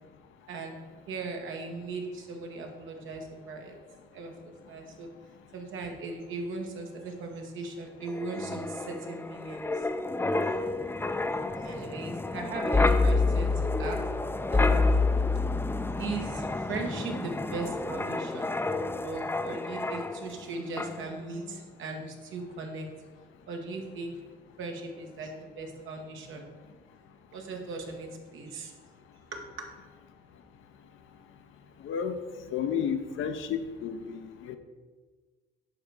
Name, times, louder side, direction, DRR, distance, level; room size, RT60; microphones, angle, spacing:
voice 1, 1.1-3.8 4.1-5.1 5.5-9.7 10.5-10.7 11.6-14.0 14.5-15.1 16.0-22.9 23.5-24.1 24.6-26.5 27.3-28.7 29.3-29.7, right 3 dB, 80° right, 2 dB, 1.5 m, -38 dB
Wind, 8.1-20.5 20.8-21.0, left 3 dB, 10° left, 0.5 m, -28 dB
voice 2, 31.8-32.1 32.5-34.6, left 7 dB, 80° left, 8 dB, 0.8 m, -32 dB
10.5 x 3.5 x 6.7 m, 1.4 s
cardioid pair, 90°, 20 cm